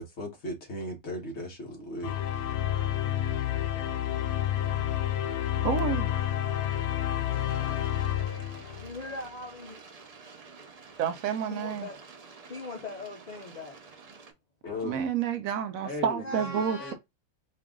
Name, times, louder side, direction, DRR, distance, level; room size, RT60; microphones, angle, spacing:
voice 1, 0.0-2.1 14.6-15.0 15.8-16.9, left 1 dB, 50° left, 1.5 m, -37 dB
sound 1, 2.0-9.1, left 12 dB, 90° left, 1.1 m, -29 dB
voice 2, 5.6-6.1 11.0-11.9 14.8-16.9, right 8 dB, 70° right, 1.0 m, -29 dB
sound 2, 7.3-14.3, right 4 dB, 40° right, 0.5 m, -50 dB
voice 3, 8.8-9.8 11.5-12.0 12.5-13.8 16.2-16.9, left 2 dB, 65° left, 0.4 m, -40 dB
4.5 x 2.5 x 3.6 m
omnidirectional pair, 1.6 m